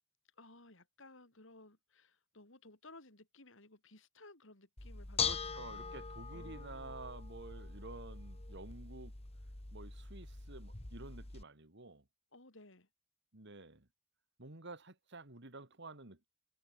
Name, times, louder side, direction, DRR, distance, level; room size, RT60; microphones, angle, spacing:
voice 1, 0.4-6.0 6.3-7.0 12.3-12.9, left 2 dB, 65° left, 4.4 m, -59 dB
Bell / Dishes pots and pans, 4.8-11.4, left 5 dB, 30° left, 1.5 m, -42 dB
voice 2, 5.2-9.1 9.7-12.0 13.3-13.9 14.4-16.3, right 2 dB, 60° right, 2.7 m, -51 dB
head